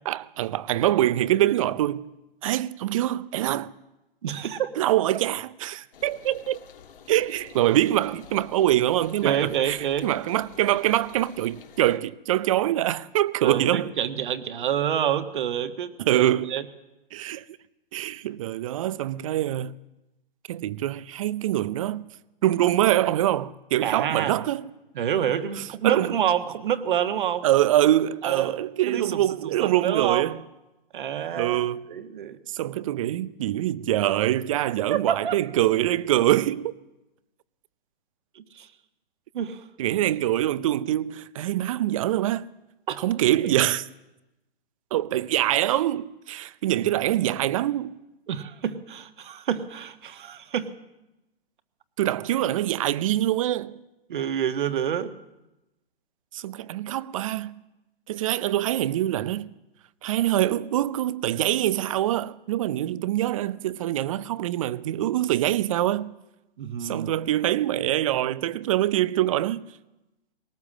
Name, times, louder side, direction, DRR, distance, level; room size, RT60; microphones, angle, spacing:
voice 1, 0.1-2.1 2.4-3.7 4.8-6.6 7.1-13.9 16.0-16.6 17.1-17.4 17.9-19.7 20.5-22.1 22.4-24.6 25.8-26.2 27.4-30.4 31.3-31.8 32.5-36.7 39.8-42.5 43.0-43.9 44.9-47.9 52.0-53.8 56.3-57.6 58.1-59.5 60.0-66.1 66.8-69.6, right 13 dB, 35° right, 0.6 m, -24 dB
voice 2, 4.2-4.7 9.2-10.1 13.4-16.6 23.8-24.4 24.9-27.4 28.2-28.6 28.9-29.3 29.6-30.2 30.9-31.6 31.9-32.4 34.5-35.4 38.3-38.7 39.3-39.7 42.9-43.0 43.4-43.5 48.3-50.7 54.1-55.1 66.6-67.1, right 9 dB, 55° right, 1.6 m, -28 dB
sound 1, 5.9-12.0, left 7 dB, 60° left, 2.0 m, -49 dB
20.5 x 18.5 x 7.4 m
hypercardioid pair, 130°, 30 cm